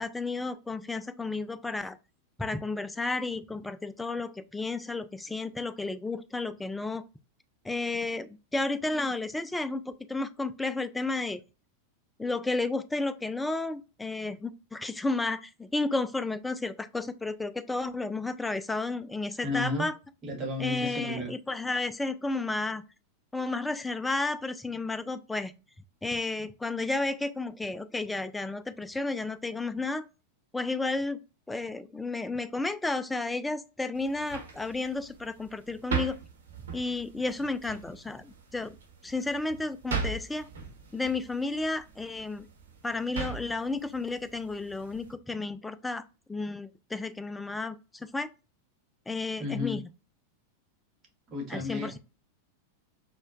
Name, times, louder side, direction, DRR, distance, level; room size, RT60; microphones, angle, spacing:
voice 1, 0.0-2.0 2.4-7.0 7.6-11.4 12.2-19.9 20.6-22.8 23.3-25.5 26.0-30.1 30.5-31.2 31.5-36.2 36.7-38.8 39.0-40.5 40.9-42.5 42.8-46.0 46.3-48.3 49.1-49.8 51.5-52.0, left 3 dB, 5° left, 0.3 m, -32 dB
voice 2, 19.4-19.9 20.2-21.3 49.4-49.8 51.3-52.0, left 2 dB, 30° right, 1.1 m, -33 dB
sound 1, 33.9-45.1, right 6 dB, 65° right, 1.0 m, -40 dB
4.3 x 2.2 x 2.3 m
figure-of-eight pair, 90°, 0 cm